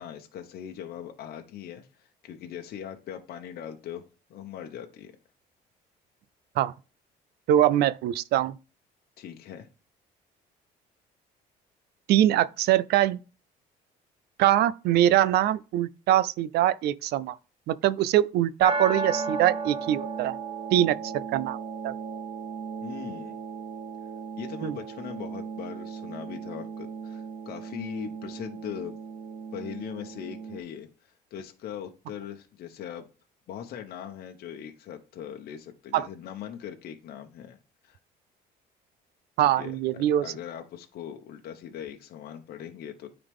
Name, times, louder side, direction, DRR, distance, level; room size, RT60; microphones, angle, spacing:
voice 1, 0.0-4.0 4.3-5.1 9.2-9.7 22.8-23.4 24.4-28.9 29.5-33.1 33.5-37.6 37.8-38.0 39.6-43.1, left 9 dB, 65° left, 1.0 m, -40 dB
voice 2, 7.5-8.6 12.1-13.2 14.4-17.4 17.7-20.4 20.7-21.6 21.8-21.9 24.6-24.8 35.9-36.1 39.4-40.3, right 12 dB, 75° right, 0.5 m, -23 dB
sound 1, 18.6-30.6, right 4 dB, 35° right, 1.1 m, -35 dB
9.9 x 4.0 x 3.6 m
cardioid pair, 110°, 17 cm